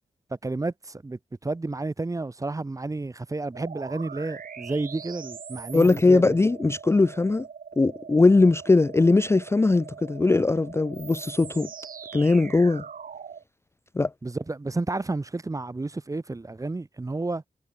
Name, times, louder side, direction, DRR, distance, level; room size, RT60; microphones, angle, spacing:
voice 1, 0.4-6.4 14.2-17.4, right 2 dB, 20° right, 0.8 m, -31 dB
sound 1, 3.5-13.4, right 7 dB, 75° right, 1.2 m, -42 dB
voice 2, 5.7-7.4 7.8-11.7 12.1-12.8 14.0-14.1, left 3 dB, 20° left, 0.4 m, -20 dB
wide cardioid pair, 95°, 15 cm